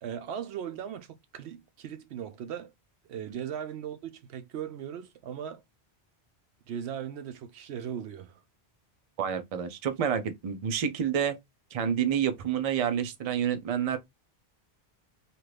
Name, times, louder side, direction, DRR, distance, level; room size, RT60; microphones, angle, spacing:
voice 1, 0.0-2.7 3.0-5.6 6.7-8.4, right 9 dB, 75° right, 0.9 m, -38 dB
voice 2, 9.2-11.4 11.7-14.0, right 8 dB, 45° right, 0.5 m, -28 dB
2.8 x 2.5 x 3.2 m
omnidirectional pair, 1.1 m